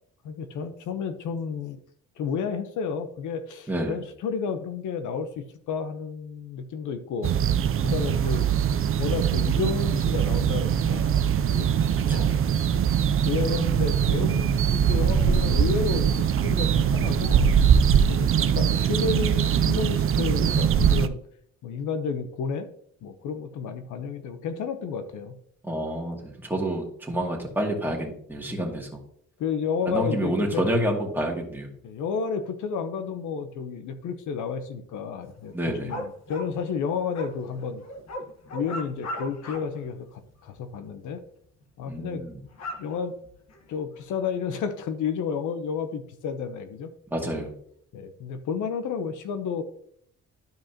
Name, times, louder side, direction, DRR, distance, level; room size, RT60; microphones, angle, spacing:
voice 1, 0.2-1.8 2.2-7.4 7.8-8.5 9.0-11.7 12.1-12.3 12.7-12.8 13.2-17.5 17.8-21.2 21.6-22.7 23.0-25.4 28.5-28.8 29.4-30.7 31.8-37.8 38.5-41.2 41.8-42.2 42.8-43.1 43.7-46.9 47.3-47.4 47.9-49.6, left 6 dB, 80° left, 9 dB, 0.9 m, -31 dB
voice 2, 3.7-4.0 12.1-12.3 25.6-29.0 29.9-31.7 35.5-35.9 41.9-42.4 47.1-47.5, right 1 dB, 5° right, -1 dB, 2.2 m, -28 dB
sound 1, 7.2-21.1, right 8 dB, 45° right, 0.5 m, -22 dB
sound 2, 35.3-39.8 40.1-40.6 41.2-41.3 41.6-41.7 42.1-44.0 44.6-44.7, left 1 dB, 60° left, 1.5 m, -38 dB
12.0 x 5.0 x 2.9 m, 0.65 s
cardioid pair, 90°, 30 cm